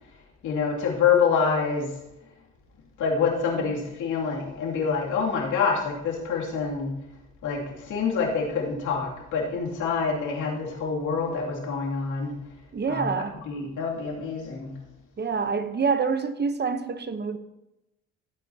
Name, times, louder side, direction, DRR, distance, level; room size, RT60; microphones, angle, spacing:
voice 1, 0.4-1.9 3.0-7.0 7.4-12.4 12.9-14.7, left 5 dB, 85° left, -2 dB, 2.6 m, -26 dB
voice 2, 12.7-13.4 15.2-17.4, right 5 dB, 35° right, 10 dB, 0.9 m, -27 dB
15.5 x 9.1 x 2.8 m, 0.91 s
cardioid pair, 90°, 30 cm